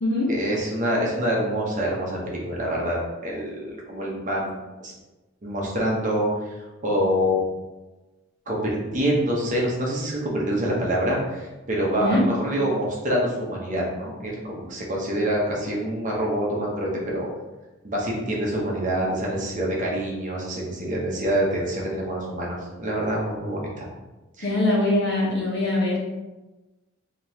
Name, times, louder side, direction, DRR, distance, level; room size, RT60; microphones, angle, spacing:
voice 1, 0.3-4.5 4.8-4.9 5.4-6.5 6.8-7.4 8.5-17.3 17.8-23.9 24.4-24.5, equal, 35° right, -3 dB, 0.9 m, -26 dB
voice 2, 24.4-26.0, left 1 dB, 55° left, -4 dB, 1.1 m, -22 dB
5.2 x 2.9 x 2.8 m, 1.1 s
head